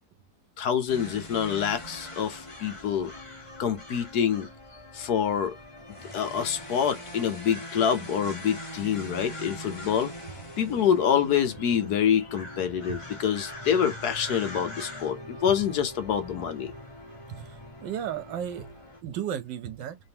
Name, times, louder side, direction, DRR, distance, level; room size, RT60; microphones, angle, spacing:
voice 1, 0.6-3.1 3.6-4.5 4.9-5.5 6.1-10.1 10.6-16.7, left 8 dB, 65° left, 1.2 m, -26 dB
sound 1, 0.9-19.0, left 1 dB, 20° left, 1.3 m, -42 dB
voice 2, 17.8-18.7 19.0-20.0, right 9 dB, 75° right, 1.5 m, -33 dB
3.5 x 3.4 x 2.8 m
omnidirectional pair, 2.0 m